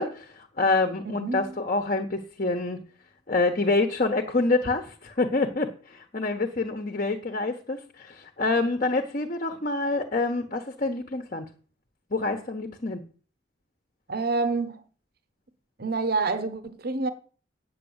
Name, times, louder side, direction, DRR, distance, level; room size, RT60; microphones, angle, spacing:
voice 1, 0.0-2.9 3.3-11.5 12.1-13.0, left 3 dB, 45° left, 1.2 m, -27 dB
voice 2, 1.0-1.6 14.1-14.8 15.8-17.1, right 3 dB, 55° right, 1.1 m, -28 dB
8.9 x 8.5 x 8.0 m
head